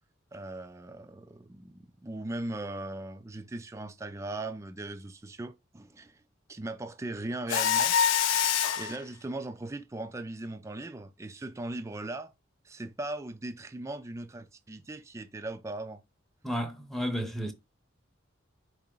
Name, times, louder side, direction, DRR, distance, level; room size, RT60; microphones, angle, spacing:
voice 1, 0.3-6.2 6.5-8.0 8.8-12.3 12.6-16.0, right 2 dB, 15° right, 0.3 m, -39 dB
Mechanisms, 7.5-9.0, left 8 dB, 70° left, 0.4 m, -25 dB
voice 2, 16.4-17.5, equal, ahead, 0.7 m, -32 dB
4.7 x 3.0 x 3.7 m
head